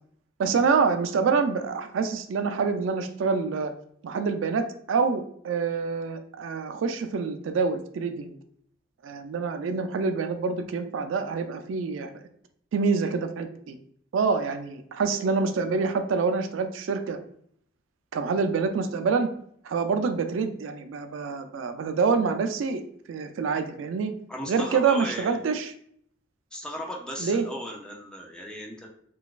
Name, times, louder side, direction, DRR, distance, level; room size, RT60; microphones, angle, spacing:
voice 1, 0.4-3.7 4.0-8.4 9.0-12.1 12.7-13.8 14.1-17.2 18.1-19.3 19.6-22.8 23.1-24.1 24.5-25.7 27.2-27.5, right 5 dB, 75° right, 8 dB, 0.3 m, -26 dB
voice 2, 24.3-25.4 26.5-28.9, equal, 5° left, -1 dB, 0.4 m, -36 dB
3.9 x 2.4 x 2.4 m, 0.65 s
head